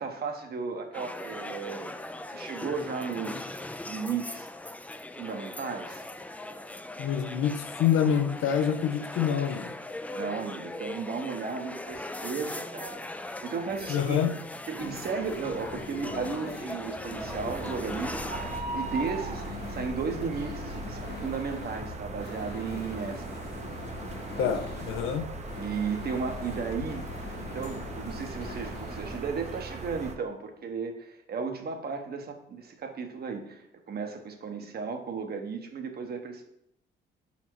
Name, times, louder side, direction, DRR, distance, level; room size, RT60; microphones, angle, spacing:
voice 1, 0.0-1.9 2.3-4.5 5.1-6.0 10.1-14.3 14.7-23.2 24.3-24.5 25.5-27.0 27.4-36.4, right 5 dB, 50° right, 5 dB, 1.1 m, -35 dB
sound 1, 0.9-18.6, left 1 dB, 5° left, 0.3 m, -39 dB
voice 2, 7.0-9.7 13.9-14.3 24.4-25.2, left 8 dB, 85° left, 8 dB, 0.7 m, -26 dB
sound 2, 14.8-29.2, left 4 dB, 55° left, 1.4 m, -42 dB
sound 3, 17.2-30.2, right 3 dB, 35° right, 0.7 m, -39 dB
5.6 x 4.2 x 4.7 m, 0.76 s
cardioid pair, 90°, 20 cm